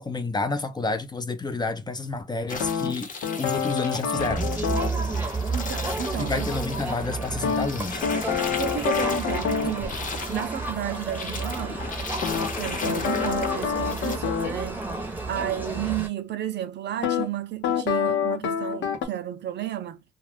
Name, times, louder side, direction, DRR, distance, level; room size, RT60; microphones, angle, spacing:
voice 1, 0.0-3.1 3.4-4.5 6.2-8.0, left 3 dB, 20° left, 0.5 m, -29 dB
sound 1, 2.5-14.2, left 4 dB, 40° left, 0.9 m, -36 dB
sound 2, 2.6-5.0 7.4-9.8 12.2-14.6 17.0-17.3 17.6-19.1, left 7 dB, 70° left, 0.8 m, -27 dB
Crowd, 4.2-16.1, right 3 dB, 10° right, 0.8 m, -31 dB
voice 2, 5.5-6.5 8.5-10.0 10.3-11.8 12.6-14.9 15.3-20.0, right 11 dB, 60° right, 0.6 m, -32 dB
2.4 x 2.3 x 3.4 m
cardioid pair, 90°, 20 cm